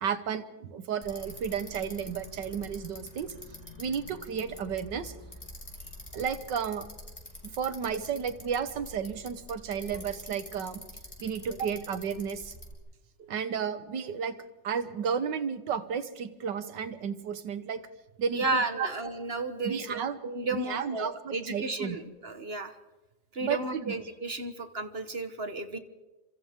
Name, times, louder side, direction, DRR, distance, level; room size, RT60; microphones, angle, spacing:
voice 1, 0.0-3.3 3.8-5.1 6.1-6.9 7.6-10.8 11.2-12.5 13.2-14.4 14.6-17.8 18.2-18.9 19.6-20.2 20.5-22.0 23.4-23.9, right 7 dB, 85° right, 11 dB, 1.9 m, -33 dB
Bicycle, 1.0-12.7, left 1 dB, 15° left, 5.3 m, -46 dB
voice 2, 18.3-22.7 23.3-25.8, right 3 dB, 35° right, 8 dB, 1.5 m, -33 dB
29.5 x 26.5 x 3.7 m, 1.1 s
omnidirectional pair, 1.9 m